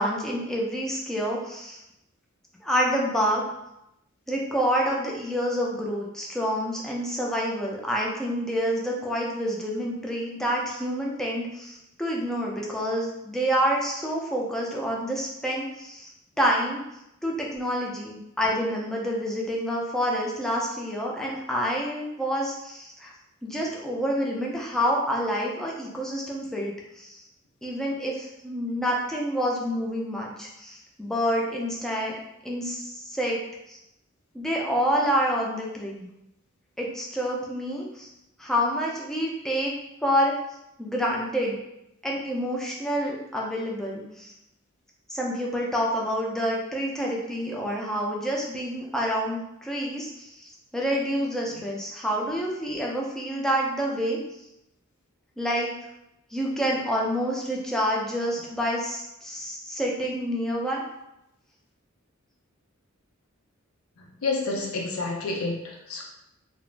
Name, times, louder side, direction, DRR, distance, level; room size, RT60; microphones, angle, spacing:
voice 1, 0.0-1.8 2.6-3.4 4.3-16.1 16.4-16.8 17.2-23.1 23.4-27.2 27.6-32.2 32.4-33.4 33.7-33.8 34.3-36.1 36.8-38.1 38.4-39.7 40.0-40.3 40.8-41.6 42.0-44.3 45.1-50.4 50.7-54.2 55.4-55.7 56.3-60.8, equal, ahead, -3 dB, 0.3 m, -28 dB
voice 2, 64.0-66.0, left 3 dB, 80° left, 0 dB, 0.6 m, -30 dB
2.4 x 2.0 x 3.1 m, 0.86 s
head